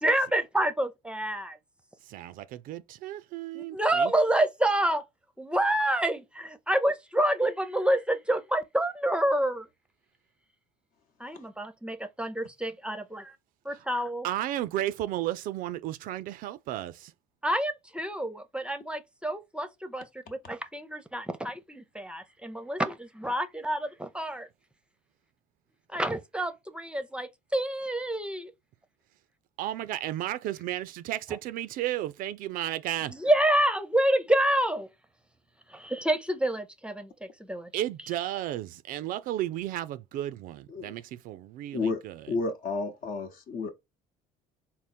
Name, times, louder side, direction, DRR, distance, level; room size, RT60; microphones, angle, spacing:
voice 1, 0.0-1.6 3.5-5.0 5.4-9.7 11.2-13.2 13.7-14.3 17.4-24.5 25.9-28.5 33.1-34.9 35.7-37.7, right 1 dB, 5° right, 0.6 m, -28 dB
voice 2, 2.0-4.1 13.7-13.8 14.2-17.1 29.6-33.1 37.7-42.2, right 13 dB, 60° right, 0.4 m, -33 dB
voice 3, 42.3-43.7, left 3 dB, 60° left, 0.9 m, -31 dB
3.6 x 2.0 x 4.2 m
supercardioid pair, 80°, 16 cm